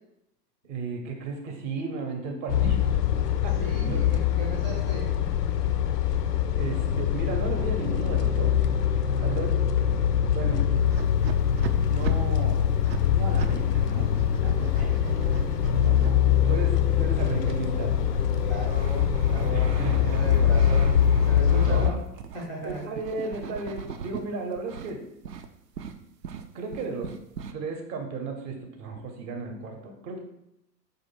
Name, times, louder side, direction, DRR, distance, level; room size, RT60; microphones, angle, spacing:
voice 1, 0.6-2.8 3.4-4.0 6.5-8.6 8.9-9.6 10.3-10.7 11.9-14.1 14.4-15.5 15.8-17.9 19.5-20.5 21.6-21.9 22.6-25.0 26.5-27.1 27.5-30.2, right 4 dB, 30° right, 3 dB, 0.8 m, -35 dB
sound 1, 2.5-21.9, left 9 dB, 75° left, 0.5 m, -23 dB
voice 2, 3.6-5.3 9.0-9.3 14.7-15.3 18.4-22.0 22.3-22.9 23.3-23.5, equal, 5° left, -8 dB, 0.3 m, -37 dB
sound 2, 10.8-13.6 13.9-16.1 16.8-24.2 24.5-24.9 25.2-25.5 25.7-27.5, right 7 dB, 85° right, 0.5 m, -39 dB
4.5 x 2.6 x 4.2 m, 0.81 s
figure-of-eight pair, 100°, 48 cm